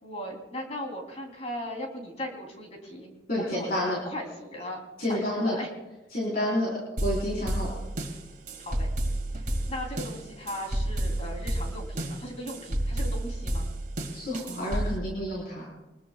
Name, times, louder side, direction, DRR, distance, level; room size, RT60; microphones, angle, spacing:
voice 1, 0.0-3.1 3.4-5.7 8.6-8.9 9.7-13.7, left 1 dB, 35° left, 1 dB, 3.3 m, -38 dB
voice 2, 3.3-4.0 5.0-5.6 6.1-6.7 7.0-7.7 14.1-15.7, left 1 dB, 55° left, -5 dB, 4.3 m, -29 dB
sound 1, 7.0-15.0, right 1 dB, 45° right, 2.2 m, -31 dB
24.5 x 22.0 x 2.4 m, 1.1 s
head